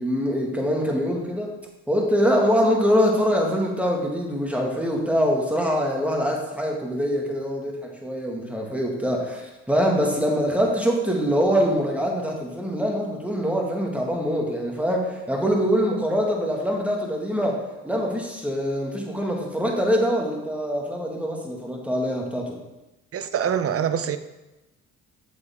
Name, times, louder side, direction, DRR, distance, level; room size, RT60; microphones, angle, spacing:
voice 1, 0.0-1.5 1.9-22.6, equal, 5° right, -1 dB, 1.9 m, -24 dB
voice 2, 23.1-24.2, right 8 dB, 50° right, 11 dB, 0.7 m, -24 dB
8.1 x 7.0 x 3.6 m, 1.0 s
cardioid pair, 90°, 30 cm